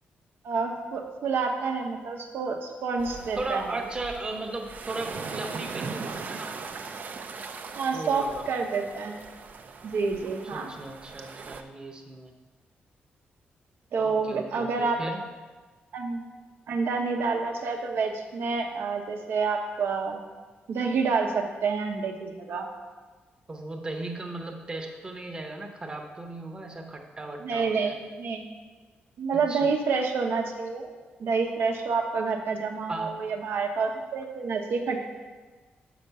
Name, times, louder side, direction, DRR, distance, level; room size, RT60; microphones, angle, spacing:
voice 1, 0.4-3.7 7.8-9.2 9.8-10.8 13.9-15.0 15.9-16.3 16.7-20.2 20.7-22.7 27.4-28.5 29.2-30.9 31.2-35.0, right 4 dB, 75° right, 3 dB, 1.0 m, -28 dB
sound 1, 3.0-11.6, right 4 dB, 50° right, 0.5 m, -40 dB
voice 2, 3.4-6.6 7.9-8.5 10.4-12.3 14.0-15.2 23.5-28.0 29.3-29.7 32.9-33.1, right 2 dB, 25° right, 3 dB, 0.9 m, -36 dB
6.0 x 5.4 x 6.8 m, 1.4 s
wide cardioid pair, 135°, 4 cm